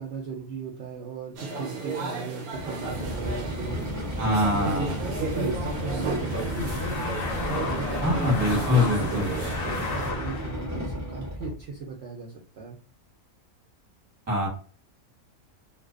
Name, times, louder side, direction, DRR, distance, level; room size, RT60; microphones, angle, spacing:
voice 1, 0.0-3.9 4.5-7.0 7.5-12.8, right 5 dB, 65° right, -1 dB, 0.7 m, -36 dB
sound 1, 1.4-10.1, right 3 dB, 85° right, 1.1 m, -35 dB
sound 2, 2.5-11.6, left 1 dB, 25° right, 0.4 m, -33 dB
sound 3, 3.6-10.7, left 3 dB, 55° left, 0.6 m, -35 dB
voice 2, 4.2-4.9 8.0-9.3 14.3-14.5, left 2 dB, 10° right, -2 dB, 0.8 m, -23 dB
2.4 x 2.2 x 2.3 m, 0.39 s
omnidirectional pair, 1.5 m